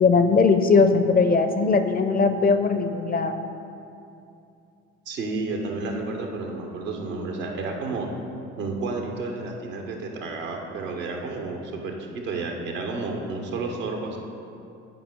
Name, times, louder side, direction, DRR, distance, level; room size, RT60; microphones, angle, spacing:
voice 1, 0.0-3.4, left 4 dB, 25° left, 8 dB, 0.4 m, -19 dB
voice 2, 5.1-8.1 8.6-14.2, right 3 dB, 80° right, 1 dB, 0.9 m, -31 dB
9.3 x 5.0 x 3.6 m, 2.6 s
figure-of-eight pair, 50°, 39 cm